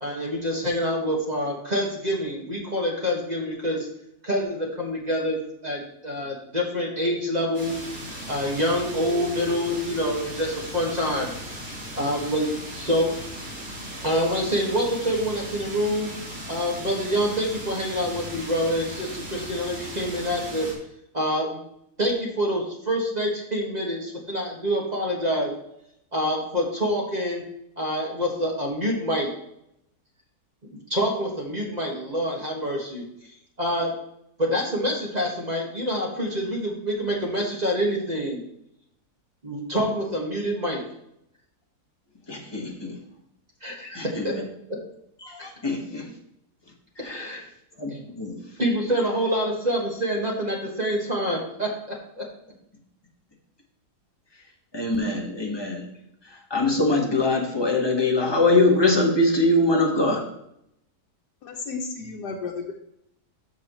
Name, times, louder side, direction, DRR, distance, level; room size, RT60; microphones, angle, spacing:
voice 1, 0.0-3.9 4.2-5.4 5.6-7.7 8.3-11.3 12.0-13.1 14.0-16.1 16.5-20.7 21.1-21.6 22.0-25.5 26.1-27.4 27.8-29.3 30.7-33.0 33.6-33.9 34.4-38.4 39.4-40.8 43.6-44.3 45.4-45.5 47.0-47.4 47.9-48.0 48.6-52.2, equal, 25° right, -2 dB, 1.8 m, -26 dB
sound 1, 7.5-20.7, equal, 60° right, 3.3 m, -37 dB
voice 2, 42.3-43.0 43.9-44.4 45.2-46.1 47.0-47.4 47.8-47.9 48.2-48.4 54.7-55.9 56.5-60.3, left 2 dB, 15° left, 0 dB, 1.5 m, -23 dB
voice 3, 61.4-62.7, left 4 dB, 85° left, -1 dB, 1.5 m, -33 dB
13.5 x 6.1 x 3.1 m, 0.77 s
omnidirectional pair, 1.7 m